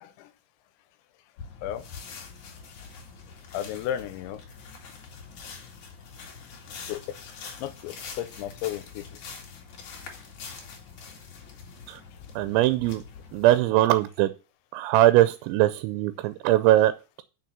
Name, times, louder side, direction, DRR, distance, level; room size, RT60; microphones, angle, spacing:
sound 1, 1.4-13.6, left 5 dB, 55° left, 2.7 m, -44 dB
voice 1, 3.5-4.4 6.9-7.0 7.6-9.1, left 11 dB, 85° left, 3.1 m, -33 dB
voice 2, 12.4-13.0 13.3-14.3 14.7-16.9, right 14 dB, 85° right, 2.9 m, -21 dB
6.5 x 6.1 x 7.1 m
omnidirectional pair, 5.2 m